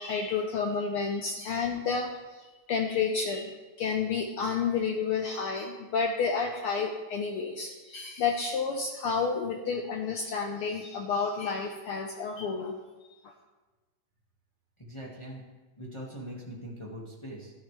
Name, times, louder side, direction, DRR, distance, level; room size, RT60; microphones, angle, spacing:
voice 1, 0.0-12.7 13.2-13.3, left 5 dB, 75° left, 3 dB, 1.3 m, -30 dB
voice 2, 14.8-15.4 15.8-17.5, equal, 15° left, -4 dB, 1.1 m, -41 dB
14.0 x 11.0 x 3.3 m, 1.2 s
omnidirectional pair, 3.3 m